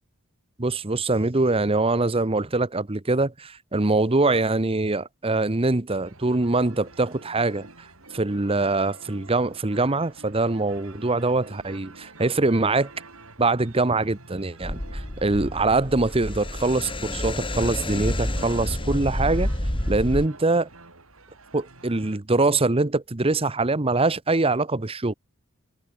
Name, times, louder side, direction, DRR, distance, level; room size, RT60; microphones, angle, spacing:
voice 1, 0.6-7.7 8.1-12.9 13.4-19.5 19.9-20.7 21.5-25.1, right 2 dB, 25° right, 1.0 m, -23 dB
sound 1, 6.0-22.2, right 3 dB, 90° right, 7.7 m, -48 dB
sound 2, 14.6-20.3, left 1 dB, 25° left, 2.5 m, -29 dB
head